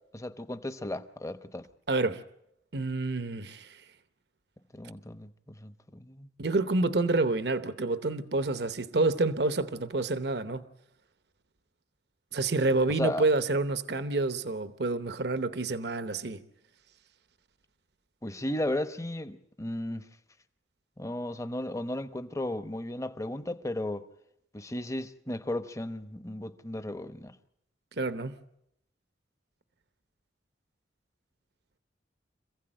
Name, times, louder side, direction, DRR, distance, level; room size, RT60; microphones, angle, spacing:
voice 1, 0.1-1.7 4.8-6.3 13.0-13.2 18.2-20.0 21.0-24.1 24.5-27.4, left 1 dB, 15° left, 0.9 m, -35 dB
voice 2, 1.9-2.2 2.7-3.8 6.4-10.6 12.3-16.4 28.0-28.4, right 2 dB, 60° right, 0.9 m, -28 dB
27.0 x 15.5 x 8.9 m
head